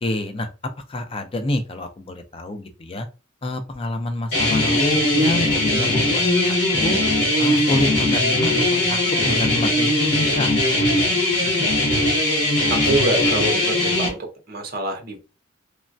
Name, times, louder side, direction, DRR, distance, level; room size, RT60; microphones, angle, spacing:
voice 1, 0.0-0.5 0.9-3.1 3.4-6.2 6.8-7.0 7.4-10.5, left 1 dB, 30° left, 5 dB, 0.4 m, -27 dB
sound 1, 4.3-14.1, left 1 dB, 60° left, 1.2 m, -20 dB
voice 2, 12.8-14.2 14.5-15.2, right 2 dB, 50° right, 4 dB, 0.7 m, -25 dB
3.1 x 2.1 x 2.6 m, 0.30 s
head